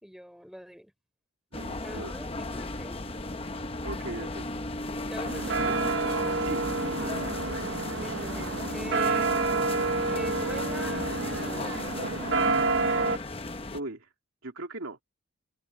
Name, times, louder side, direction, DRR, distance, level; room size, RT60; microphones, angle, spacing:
voice 1, 0.0-0.9 1.8-3.0 5.0-5.8 8.0-9.3 10.1-11.9, equal, ahead, 4.7 m, -43 dB
sound 1, 1.5-13.8, left 2 dB, 25° left, 0.8 m, -35 dB
voice 2, 1.5-2.1 3.8-4.4 6.4-6.6 6.9-7.0 13.7-14.1 14.4-15.0, right 2 dB, 80° right, 2.5 m, -38 dB
Kremlin chimes on Red Square at midnight, 5.2-13.2, right 3 dB, 60° right, 1.0 m, -29 dB
open air
head